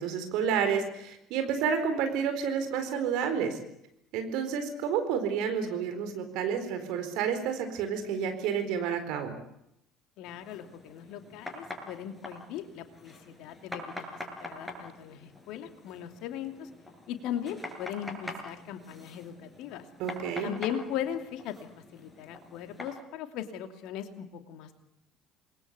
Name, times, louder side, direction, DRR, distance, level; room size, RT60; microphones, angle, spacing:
voice 1, 0.0-3.6 4.1-9.3 20.0-20.5, right 7 dB, 60° right, 7 dB, 4.3 m, -30 dB
voice 2, 10.2-16.7 17.1-19.8 20.4-24.7, left 10 dB, 60° left, 7 dB, 2.7 m, -38 dB
sound 1, 10.2-23.0, left 1 dB, 5° left, 7.3 m, -45 dB
28.0 x 21.5 x 8.2 m, 0.81 s
figure-of-eight pair, 60°, 0 cm